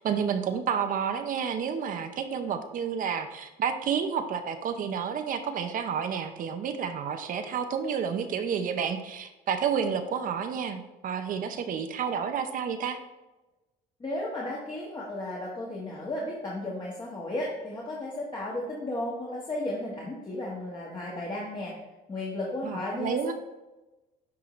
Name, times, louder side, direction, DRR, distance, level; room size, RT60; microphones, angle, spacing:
voice 1, 0.0-13.0 22.6-23.3, right 7 dB, 55° right, 8 dB, 0.7 m, -30 dB
voice 2, 14.0-21.7 22.1-23.3, left 1 dB, 25° left, -5 dB, 1.3 m, -34 dB
10.5 x 3.7 x 3.1 m, 1.1 s
cardioid pair, 110°, 17 cm